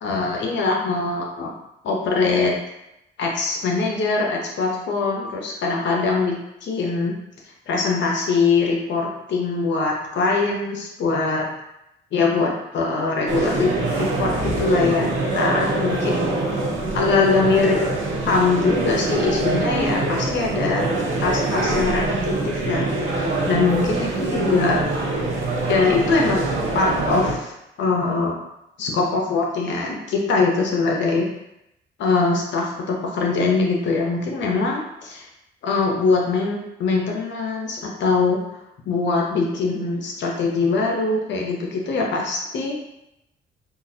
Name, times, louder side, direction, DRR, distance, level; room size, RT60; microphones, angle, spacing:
voice 1, 0.0-1.5 1.8-2.5 3.2-7.1 7.7-11.5 12.1-16.1 16.9-17.8 18.2-20.8 21.2-24.8 25.7-28.3 28.8-31.3 32.0-35.3 35.6-38.4 38.9-42.8, left 4 dB, 65° left, -1 dB, 0.7 m, -22 dB
sound 1, 13.3-27.3, right 2 dB, 75° right, 0.9 m, -24 dB
3.8 x 2.4 x 2.7 m, 0.86 s
cardioid pair, 90°, 20 cm